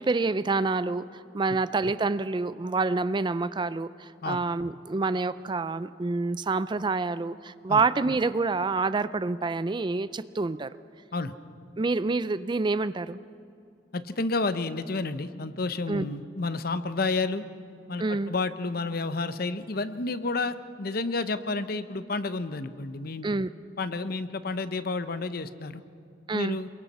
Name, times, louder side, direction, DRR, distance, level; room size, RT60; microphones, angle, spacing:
voice 1, 0.0-10.7 11.8-13.2 15.9-16.1 18.0-18.3 23.2-23.5 26.3-26.6, right 3 dB, 25° right, 15 dB, 0.4 m, -27 dB
voice 2, 13.9-17.4 17.9-23.3 23.8-25.8 26.3-26.7, left 3 dB, 55° left, 12 dB, 0.9 m, -30 dB
28.0 x 22.5 x 4.3 m, 2.4 s
head